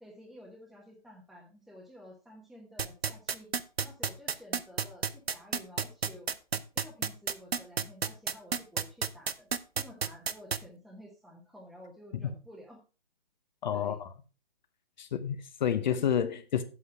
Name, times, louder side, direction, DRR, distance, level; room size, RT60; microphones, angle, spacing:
voice 1, 0.0-3.5 3.8-6.3 6.7-9.5 9.7-12.8 13.7-14.0, equal, ahead, 1.0 m, -52 dB
sound 1, 2.8-10.6, right 6 dB, 85° right, 0.8 m, -30 dB
voice 2, 13.6-14.1 15.0-16.6, left 9 dB, 50° left, 0.9 m, -29 dB
8.0 x 8.0 x 4.7 m
figure-of-eight pair, 140°, 30 cm